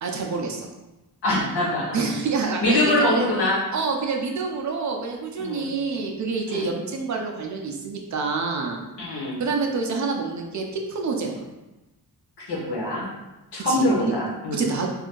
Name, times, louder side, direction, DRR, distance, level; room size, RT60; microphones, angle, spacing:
voice 1, 0.0-0.7 1.9-3.3 3.7-8.8 9.4-11.5 13.6-14.1 14.5-14.9, right 4 dB, 45° right, 2 dB, 0.5 m, -27 dB
voice 2, 1.2-2.0 2.6-3.6 5.4-5.7 6.5-6.7 9.0-9.4 12.5-13.0 13.5-14.7, left 1 dB, 90° left, -6 dB, 1.3 m, -23 dB
2.7 x 2.5 x 3.7 m, 1.0 s
wide cardioid pair, 125°, 39 cm